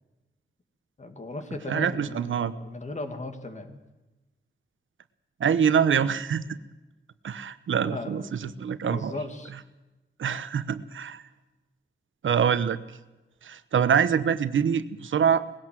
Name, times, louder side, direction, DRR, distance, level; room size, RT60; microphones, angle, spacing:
voice 1, 1.0-3.8 7.8-8.2 8.9-9.5, left 2 dB, 35° left, 7 dB, 2.3 m, -37 dB
voice 2, 1.7-2.5 5.4-6.5 7.2-9.1 10.2-11.2 12.2-12.8 13.4-15.5, right 7 dB, 90° right, 13 dB, 1.0 m, -25 dB
20.0 x 17.0 x 7.6 m, 1.1 s
wide cardioid pair, 145°, 20 cm